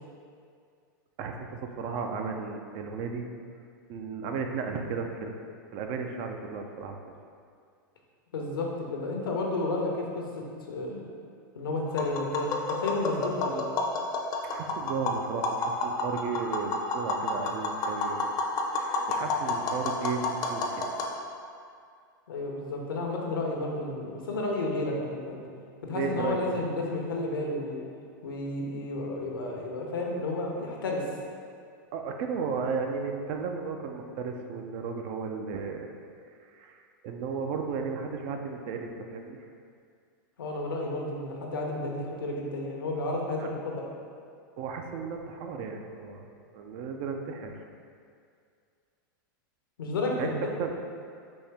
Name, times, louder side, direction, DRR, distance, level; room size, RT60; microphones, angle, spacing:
voice 1, 1.2-3.3 3.9-5.3 5.7-7.0 14.5-18.4 18.8-21.0 25.9-26.6 31.9-35.9 36.5-39.4 43.4-43.5 44.6-47.5 50.2-50.3 50.6-50.7, right 5 dB, 50° right, 4 dB, 0.4 m, -34 dB
voice 2, 8.3-11.0 11.5-13.6 22.3-25.4 25.8-27.8 28.2-31.0 40.4-43.8 49.8-50.4, left 2 dB, 90° left, -1 dB, 0.7 m, -32 dB
Tap, 11.9-21.1, left 3 dB, 35° left, 0.5 m, -30 dB
4.3 x 2.8 x 3.3 m, 2.3 s
hypercardioid pair, 120°, 11 cm